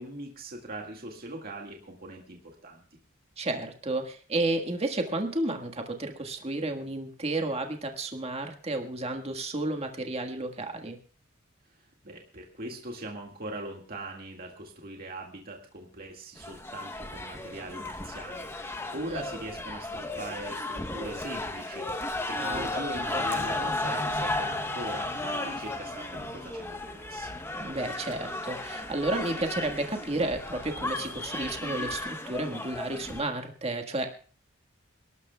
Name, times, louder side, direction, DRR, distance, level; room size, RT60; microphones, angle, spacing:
voice 1, 0.0-2.8 12.0-27.3, right 1 dB, 45° right, 0 dB, 2.0 m, -41 dB
voice 2, 3.4-11.0 19.1-19.2 22.4-22.6 22.9-23.2 27.6-34.1, right 2 dB, 30° right, 4 dB, 1.5 m, -32 dB
sound 1, 16.4-33.2, left 2 dB, 10° left, 0.9 m, -34 dB
sound 2, 22.5-32.0, equal, 65° left, 3.4 m, -52 dB
28.0 x 12.0 x 2.3 m, 0.39 s
head